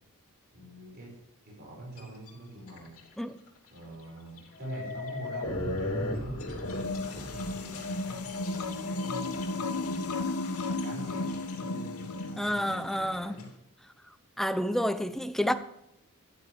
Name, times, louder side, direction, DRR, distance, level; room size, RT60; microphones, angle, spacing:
voice 1, 0.5-1.2 1.4-2.9 3.7-6.5 6.9-10.2 10.8-13.5, right 1 dB, 45° right, 5.3 m, -44 dB
sound 1, 2.0-2.3 2.7-3.1 3.5-3.6 4.4-13.5, left 2 dB, 70° left, 2.7 m, -38 dB
sound 2, 6.6-12.9, left 2 dB, 85° left, 1.0 m, -34 dB
voice 2, 12.4-13.4 14.4-15.5, equal, ahead, 0.6 m, -29 dB
12.5 x 11.5 x 3.4 m
head